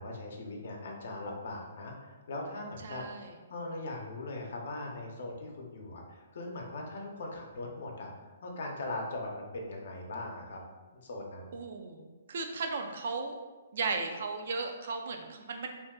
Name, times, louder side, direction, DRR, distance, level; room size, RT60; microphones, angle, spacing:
voice 1, 0.0-3.0 3.5-10.6 10.9-11.6, left 2 dB, 65° left, 0 dB, 0.6 m, -40 dB
voice 2, 2.8-3.3 11.5-13.4 13.7-15.7, right 4 dB, 65° right, 4 dB, 0.4 m, -36 dB
2.6 x 2.2 x 3.6 m, 1.3 s
hypercardioid pair, 150°, 0 cm